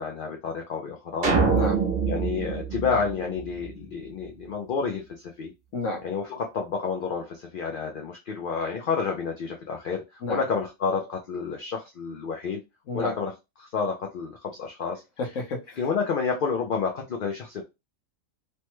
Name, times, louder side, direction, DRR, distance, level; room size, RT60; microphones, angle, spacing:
voice 1, 0.0-1.4 2.1-5.5 6.0-12.6 12.9-13.3 13.6-15.0 15.8-17.6, left 5 dB, 55° left, 0.6 m, -30 dB
sound 1, 1.2-3.8, right 5 dB, 50° right, 1.0 m, -25 dB
voice 2, 1.5-1.8 5.7-6.0 10.2-10.4 12.9-13.1 15.2-15.8, left 2 dB, 70° left, 1.2 m, -31 dB
3.2 x 2.1 x 3.0 m
omnidirectional pair, 1.4 m